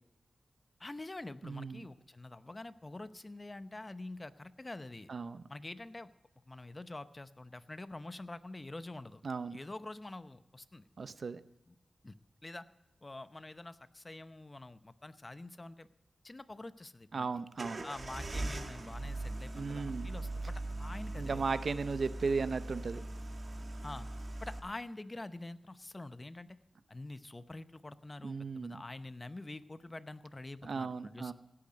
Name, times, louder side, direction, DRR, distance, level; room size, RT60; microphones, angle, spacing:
voice 1, 0.8-5.1 5.5-6.1 6.5-9.2 9.5-10.8 11.7-11.8 12.0-12.2 12.4-12.7 13.0-15.9 16.2-17.3 17.8-21.4 23.8-24.1 24.4-26.5 26.9-31.3, left 2 dB, 30° left, 13 dB, 0.7 m, -46 dB
voice 2, 1.4-1.9 5.1-5.4 9.2-9.6 11.0-11.4 17.1-17.8 19.5-20.1 21.2-23.0 28.2-28.8 30.6-31.3, right 4 dB, 70° right, 13 dB, 0.6 m, -36 dB
sound 1, 17.6-24.6, right 2 dB, 55° right, 1.9 m, -40 dB
17.0 x 8.7 x 5.1 m, 0.96 s
cardioid pair, 60°, 0 cm